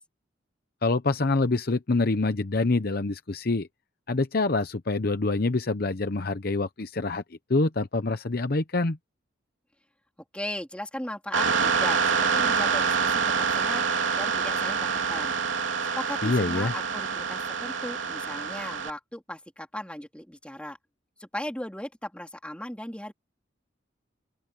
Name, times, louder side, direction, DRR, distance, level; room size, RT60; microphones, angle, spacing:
voice 1, 0.8-3.7 4.1-7.2 7.5-9.0 16.2-16.7, left 3 dB, 50° left, 0.8 m, -26 dB
voice 2, 10.3-13.8 14.1-15.3 15.9-20.8 21.2-23.1, left 1 dB, 5° left, 3.9 m, -37 dB
sound 1, 11.3-18.9, right 5 dB, 80° right, 3.1 m, -26 dB
open air
head